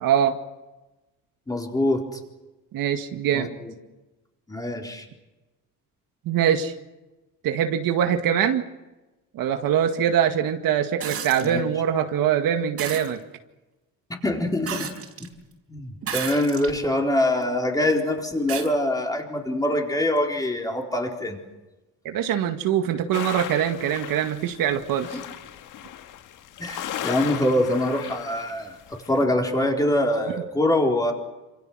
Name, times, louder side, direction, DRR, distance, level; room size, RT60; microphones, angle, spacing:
voice 1, 0.0-0.4 2.7-3.5 6.3-6.7 7.4-8.6 9.3-13.2 22.0-25.2, right 9 dB, 65° right, 6 dB, 2.0 m, -23 dB
voice 2, 1.5-2.1 3.3-3.7 4.5-5.0 11.4-11.6 14.2-14.9 15.2-15.3 15.7-21.4 26.6-31.1, left 1 dB, 10° left, 1 dB, 4.2 m, -24 dB
sound 1, 11.0-11.5 12.8-13.1 14.7-15.3 16.0-16.8 17.4-17.5 18.5-18.7 20.2-20.3, right 7 dB, 40° right, 4.5 m, -32 dB
sound 2, 23.1-29.2, left 11 dB, 55° left, 1.7 m, -37 dB
28.0 x 27.5 x 6.3 m, 1.1 s
cardioid pair, 165°, 37 cm